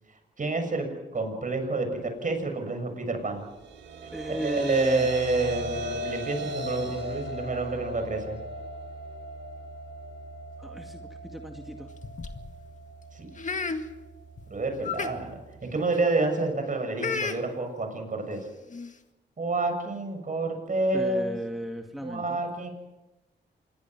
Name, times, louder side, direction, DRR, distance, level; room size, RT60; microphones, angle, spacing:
voice 1, 0.4-3.4 4.3-8.4 13.1-13.3 14.5-18.5 19.4-21.3 22.0-22.7, right 2 dB, 45° right, 5 dB, 6.9 m, -29 dB
sound 1, 3.4-15.8, right 1 dB, 80° right, 4.5 m, -38 dB
voice 2, 4.1-5.1 10.6-11.9 20.9-22.4, equal, ahead, 3 dB, 2.1 m, -35 dB
sound 2, 11.9-12.5 13.4-13.8 14.4-14.5 14.8-15.1 15.8-16.0 17.0-17.4 18.3-18.4 18.7-18.9, left 5 dB, 40° left, 2.0 m, -32 dB
26.5 x 21.0 x 6.1 m, 1.0 s
cardioid pair, 80°, 19 cm